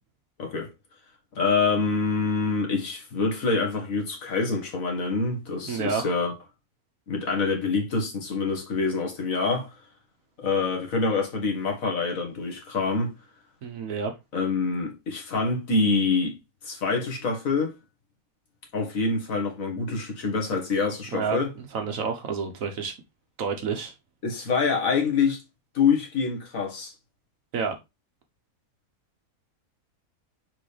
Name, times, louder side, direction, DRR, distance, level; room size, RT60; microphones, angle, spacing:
voice 1, 1.4-6.3 7.1-9.7 10.4-13.1 14.3-16.4 16.6-17.7 18.7-21.5 24.2-25.4 25.7-26.9, left 4 dB, 65° left, 1.9 m, -26 dB
voice 2, 5.6-6.0 13.6-14.1 21.1-21.4 21.7-22.9 23.4-23.9 27.5-27.8, right 5 dB, 65° right, 1.4 m, -29 dB
6.2 x 4.7 x 3.3 m
omnidirectional pair, 1.6 m